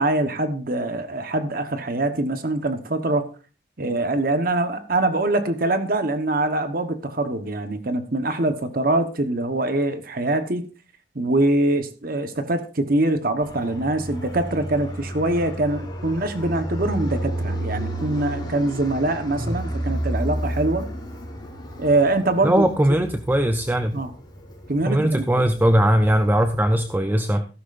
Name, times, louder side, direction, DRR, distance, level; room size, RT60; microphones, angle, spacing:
voice 1, 0.0-3.3 3.8-10.7 11.1-20.9 21.8-22.7 23.9-24.1 24.7-25.5, right 2 dB, 55° right, 8 dB, 1.2 m, -23 dB
Fixed-wing aircraft airplane, 13.4-26.9, right 1 dB, 25° left, 4.0 m, -32 dB
voice 2, 22.4-23.9 24.9-27.5, right 1 dB, 10° right, 7 dB, 0.6 m, -20 dB
15.0 x 13.0 x 2.6 m, 0.34 s
head